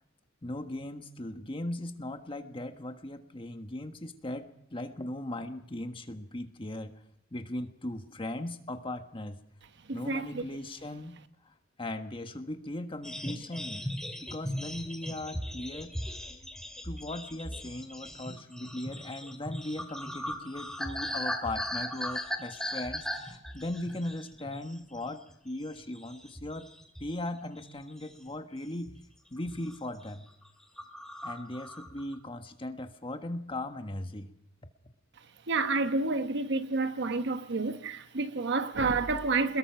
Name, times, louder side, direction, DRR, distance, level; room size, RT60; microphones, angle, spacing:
voice 1, 0.4-7.0 7.3-9.4 9.9-11.1 11.4-13.9 14.2-15.9 16.8-26.7 27.0-28.9 29.3-30.3 31.2-34.3, left 1 dB, 25° left, 1.5 m, -38 dB
voice 2, 9.9-10.3 35.5-39.6, right 3 dB, 60° right, 1.0 m, -29 dB
sound 1, 13.0-24.7 25.1-25.3 25.8-27.3 27.6-28.3 28.9-29.1 29.4-29.8 30.0-30.2 30.4-30.5 30.8-32.2, left 1 dB, 5° left, 2.1 m, -38 dB
23.0 x 21.0 x 5.9 m
head